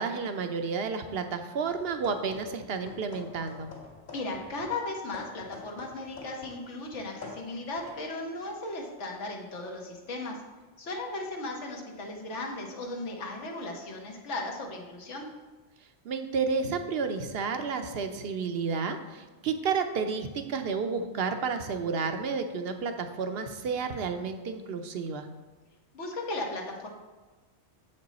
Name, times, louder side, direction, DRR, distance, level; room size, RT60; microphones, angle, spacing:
voice 1, 0.0-3.7 16.0-25.3, right 5 dB, 65° right, 7 dB, 0.8 m, -31 dB
sound 1, 1.6-2.6 2.9-6.6 6.9-8.1, left 3 dB, 65° left, 2.1 m, -47 dB
voice 2, 4.1-10.4 10.8-15.3 25.9-26.9, left 2 dB, 85° left, 1 dB, 1.5 m, -36 dB
7.3 x 5.4 x 4.0 m, 1.2 s
omnidirectional pair, 1.2 m